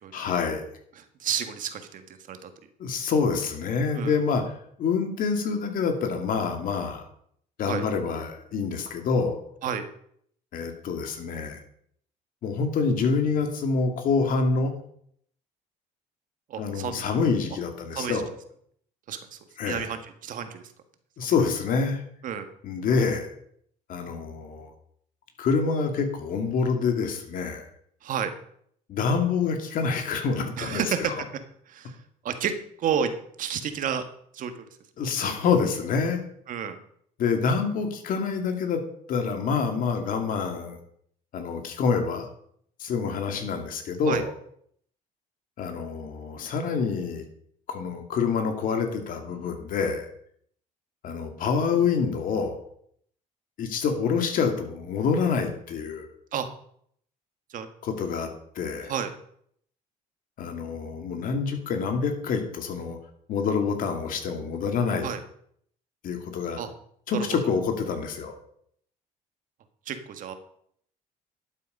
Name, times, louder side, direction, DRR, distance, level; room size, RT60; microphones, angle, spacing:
voice 1, 0.1-0.7 2.8-4.5 4.8-7.0 7.6-9.4 10.5-11.6 12.4-14.7 16.6-18.3 19.6-19.9 21.2-22.0 22.6-23.3 23.9-24.7 25.4-27.7 28.9-31.1 35.0-36.2 37.2-38.8 39.1-40.8 41.3-42.3 42.8-44.3 45.6-47.3 47.7-50.1 51.0-52.6 53.6-56.1 57.8-58.3 58.6-58.9 60.4-63.0 63.3-65.1 66.0-66.6 67.1-68.4, left 5 dB, 65° left, 5 dB, 2.4 m, -26 dB
voice 2, 1.0-2.5 3.9-4.2 7.7-7.8 9.6-9.8 16.5-17.0 17.9-18.2 19.1-19.4 19.6-20.6 21.2-21.3 22.2-22.4 28.0-28.3 30.6-31.1 31.7-31.9 32.2-32.5 32.8-34.0 34.3-34.5 36.5-36.8 44.1-44.2 56.3-56.5 57.5-57.7 58.9-59.1 65.0-65.2 66.6-66.7 67.1-67.4 69.9-70.3, right 8 dB, 60° right, 7 dB, 1.7 m, -30 dB
12.0 x 8.3 x 5.4 m, 0.66 s
cardioid pair, 105°, 16 cm